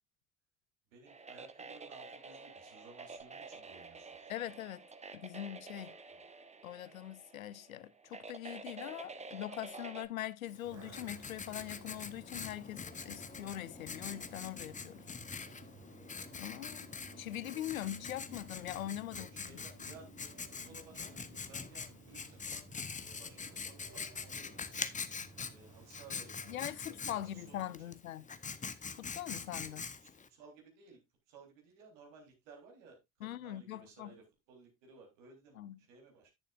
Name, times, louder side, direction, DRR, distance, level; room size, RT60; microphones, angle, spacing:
voice 1, 0.9-4.3 6.1-6.3 19.1-20.3 20.7-22.7 22.9-24.9 25.4-26.6 26.9-27.7 30.0-31.0 31.3-33.0 33.3-36.3, right 4 dB, 65° right, 3.7 m, -58 dB
sound 1, 1.1-10.1, right 3 dB, 15° right, 1.0 m, -49 dB
voice 2, 4.3-4.8 5.1-6.0 6.6-15.0 16.3-16.9 17.2-19.3 26.5-28.3 29.0-29.8 33.2-34.2 35.6-35.8, left 12 dB, 80° left, 0.6 m, -42 dB
Writing, 10.5-30.3, left 5 dB, 20° left, 0.9 m, -44 dB
sound 2, 10.6-27.6, right 4 dB, 40° right, 3.4 m, -57 dB
10.5 x 8.9 x 2.5 m
figure-of-eight pair, 55°, 41 cm